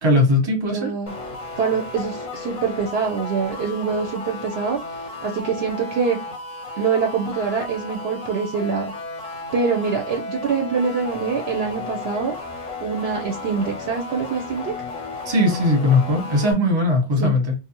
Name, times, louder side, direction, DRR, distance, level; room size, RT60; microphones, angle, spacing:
voice 1, 0.0-0.9 15.3-17.5, left 2 dB, 25° right, 0.8 m, -19 dB
voice 2, 0.7-1.1 1.6-4.8 5.2-6.2 6.8-8.9 9.5-12.4 12.8-14.7 17.2-17.3, right 5 dB, 65° right, 0.7 m, -24 dB
sound 1, 1.1-16.5, left 3 dB, 40° left, 0.6 m, -34 dB
2.6 x 2.1 x 2.8 m
omnidirectional pair, 1.3 m